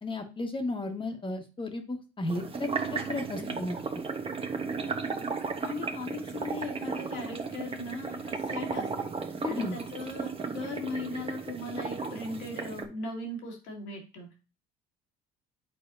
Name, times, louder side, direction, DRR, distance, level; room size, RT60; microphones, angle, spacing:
voice 1, 0.0-4.0 9.4-9.8, left 2 dB, 25° left, 5 dB, 1.6 m, -34 dB
sound 1, 2.3-12.9, right 4 dB, 30° right, 1.1 m, -35 dB
voice 2, 5.6-9.1 9.4-14.3, left 2 dB, 75° left, 1 dB, 2.4 m, -38 dB
8.2 x 4.2 x 2.7 m, 0.33 s
supercardioid pair, 75°, 19 cm